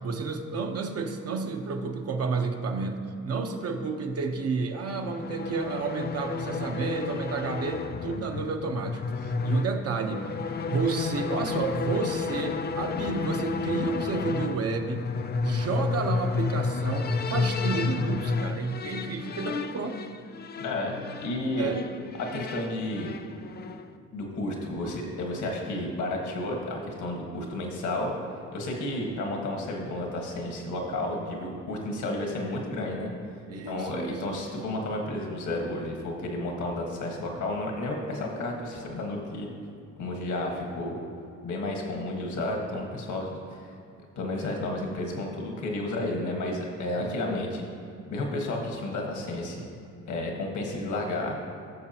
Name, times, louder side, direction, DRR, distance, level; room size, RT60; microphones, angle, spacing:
voice 1, 0.0-10.3 10.7-15.1 15.4-20.0 21.6-21.8 33.5-34.2 47.0-47.1, right 4 dB, 50° right, 4 dB, 1.0 m, -31 dB
sound 1, 4.9-23.9, left 4 dB, 35° left, 0.4 m, -32 dB
voice 2, 20.6-21.7 22.2-23.1 24.1-28.1 28.5-33.1 33.6-39.5 40.0-41.0 41.4-43.6 44.1-47.7 48.1-49.6 50.1-51.4, left 1 dB, 75° left, 0 dB, 1.6 m, -32 dB
15.5 x 6.7 x 2.9 m, 2.6 s
cardioid pair, 90°, 30 cm